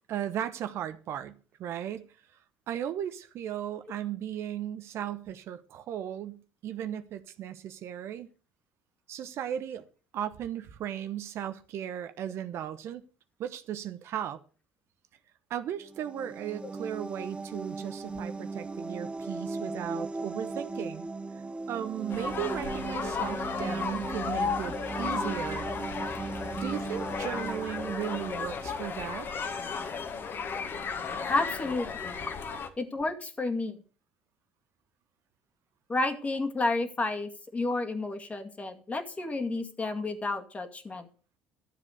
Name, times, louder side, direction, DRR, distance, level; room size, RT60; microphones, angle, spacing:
voice 1, 0.1-2.1 2.7-8.3 9.1-9.8 10.1-13.0 13.4-14.4 15.5-21.1 21.7-25.7 26.5-29.3, right 10 dB, 60° right, 1.0 m, -36 dB
sound 1, 15.8-29.4, right 3 dB, 20° right, 0.8 m, -38 dB
sound 2, 22.1-32.7, left 5 dB, 45° left, 1.8 m, -34 dB
voice 2, 31.3-32.2 32.8-33.8 35.9-41.1, left 2 dB, 25° left, 2.2 m, -31 dB
12.5 x 7.4 x 6.5 m
hypercardioid pair, 60°, 5 cm